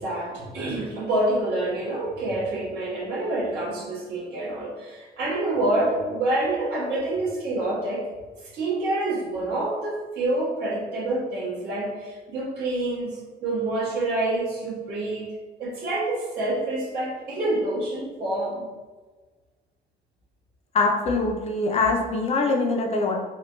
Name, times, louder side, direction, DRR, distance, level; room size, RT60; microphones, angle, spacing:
voice 1, 0.0-8.1 8.4-15.3 15.6-18.6, right 2 dB, 75° right, -7 dB, 1.4 m, -27 dB
voice 2, 20.7-23.2, left 3 dB, 40° left, 2 dB, 0.5 m, -23 dB
3.2 x 2.2 x 3.0 m, 1.3 s
cardioid pair, 110°, 17 cm